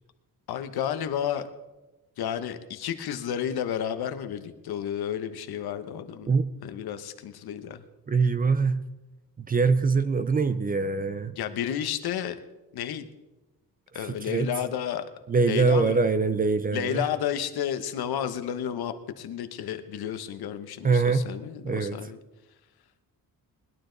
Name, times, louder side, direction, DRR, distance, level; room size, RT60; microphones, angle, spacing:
voice 1, 0.5-1.5 2.2-6.3 6.6-7.8 11.4-12.4 12.7-13.1 13.9-15.0 15.4-16.0 16.7-22.2, left 9 dB, 80° left, 9 dB, 1.2 m, -31 dB
voice 2, 8.1-8.8 9.4-11.3 14.2-14.5 15.3-17.0 20.8-21.3 21.6-22.0, right 4 dB, 25° right, 12 dB, 0.4 m, -23 dB
20.5 x 12.0 x 4.0 m, 1.1 s
wide cardioid pair, 175°, 37 cm